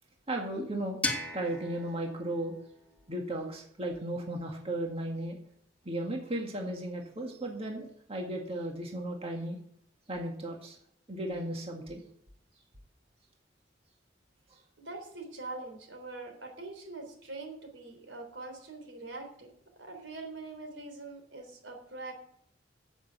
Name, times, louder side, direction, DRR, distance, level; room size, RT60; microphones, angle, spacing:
voice 1, 0.3-1.0 1.3-2.6 3.1-5.4 5.9-9.6 10.1-10.8 11.1-12.0, right 1 dB, 35° right, 1 dB, 1.8 m, -35 dB
sound 1, 1.0-3.9, left 2 dB, 10° left, 1.7 m, -38 dB
voice 2, 14.8-19.5 19.8-22.2, right 3 dB, 85° right, 4 dB, 3.5 m, -43 dB
9.7 x 8.1 x 8.1 m, 0.67 s
head